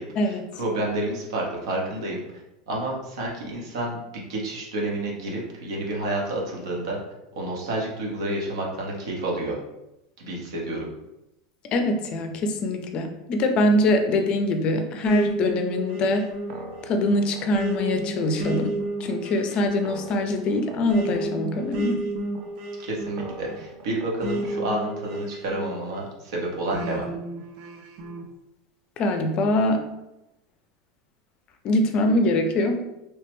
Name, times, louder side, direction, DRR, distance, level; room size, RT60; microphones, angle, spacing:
voice 1, 0.0-2.2 2.7-4.0 4.3-7.0 7.3-9.6 10.2-10.9 22.8-27.1, right 1 dB, 85° right, -2 dB, 1.0 m, -29 dB
voice 2, 11.7-16.3 16.8-18.7 19.0-22.0 29.0-29.9 31.6-32.8, left 1 dB, 35° left, 6 dB, 0.4 m, -23 dB
sound 1, 15.0-26.1 26.7-28.3, right 1 dB, 50° right, 0.4 m, -32 dB
3.2 x 2.1 x 3.0 m, 0.89 s
supercardioid pair, 145°, 3 cm